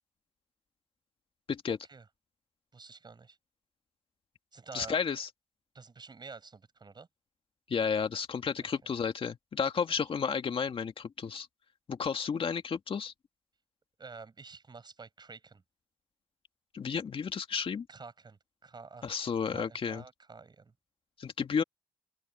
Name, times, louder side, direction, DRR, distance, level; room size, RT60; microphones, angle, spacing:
voice 1, 1.7-2.1 2.7-3.4 4.5-5.0 5.7-7.1 8.6-8.9 14.0-15.6 17.9-19.1 19.5-20.7, right 4 dB, 40° right, 7.1 m, -49 dB
voice 2, 4.7-5.3 7.7-11.5 11.9-13.1 16.7-17.9 19.0-20.0 21.2-21.6, left 6 dB, 55° left, 2.2 m, -32 dB
open air
supercardioid pair, 55°, 11 cm